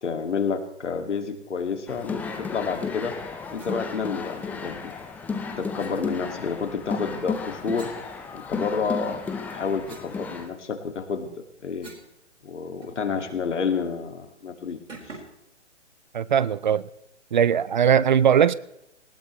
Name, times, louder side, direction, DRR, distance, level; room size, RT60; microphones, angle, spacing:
voice 1, 0.0-3.2 3.5-4.9 5.6-7.9 8.3-11.9 12.4-14.8 15.1-15.2, left 5 dB, 70° left, 6 dB, 2.2 m, -29 dB
sound 1, 1.9-10.5, left 4 dB, 5° left, 0.6 m, -33 dB
sound 2, 3.5-3.8 5.8-6.0 7.7-8.8 9.2-12.1 12.4-12.5 12.8-13.5 13.8-14.0 14.9-15.4, right 3 dB, 85° right, 4.7 m, -47 dB
voice 2, 16.1-16.8 17.3-18.5, right 8 dB, 40° right, 19 dB, 0.5 m, -19 dB
19.5 x 17.5 x 3.1 m, 0.85 s
hypercardioid pair, 140°, 36 cm